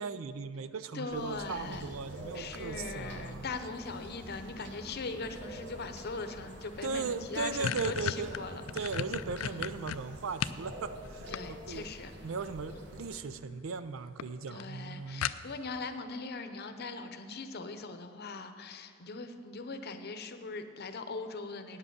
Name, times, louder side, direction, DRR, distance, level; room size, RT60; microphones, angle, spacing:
voice 1, 0.0-3.5 6.8-11.9 12.2-15.3, right 5 dB, 80° right, 13 dB, 0.5 m, -38 dB
voice 2, 0.9-1.9 2.3-9.0 9.4-9.6 11.3-12.1 12.7-12.8 14.5-21.8, left 3 dB, 55° left, 8 dB, 0.7 m, -40 dB
sound 1, 1.1-13.2, equal, 60° right, 1.3 m, -47 dB
sound 2, 6.8-6.9 7.2-10.6 11.0-11.9 13.0-13.4 13.8-13.9 14.2-14.3 14.6-14.7 15.2-15.8, left 9 dB, 80° left, 0.3 m, -35 dB
9.6 x 7.7 x 6.6 m, 2.3 s
head